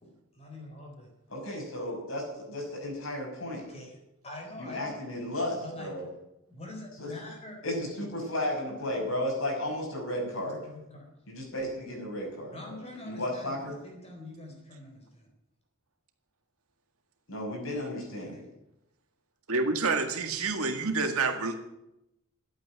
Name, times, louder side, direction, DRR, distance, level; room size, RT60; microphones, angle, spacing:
voice 1, 0.0-1.1 3.7-5.0 5.6-6.0 6.5-7.9 10.4-11.1 12.5-15.3 18.2-18.5, left 2 dB, 30° left, 1 dB, 4.1 m, -44 dB
voice 2, 1.3-3.6 4.6-6.0 7.0-7.1 7.6-10.6 11.3-12.7 13.0-13.8 17.3-18.4, left 1 dB, 70° left, 0 dB, 6.1 m, -34 dB
voice 3, 19.5-21.6, right 3 dB, 90° right, 5 dB, 1.9 m, -28 dB
11.5 x 8.6 x 9.8 m, 0.86 s
head